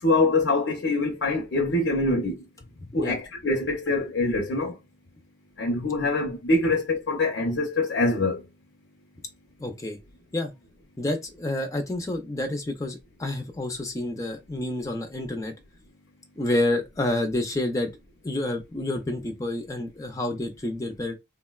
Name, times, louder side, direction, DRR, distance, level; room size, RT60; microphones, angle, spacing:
voice 1, 0.0-2.4 2.9-4.8 5.6-8.4, left 2 dB, 80° left, 0.6 m, -24 dB
voice 2, 2.8-3.2 9.6-10.0 10.3-10.5 11.0-15.5 16.4-17.9 18.2-21.1, left 1 dB, 15° left, 0.4 m, -29 dB
3.6 x 2.1 x 2.2 m
head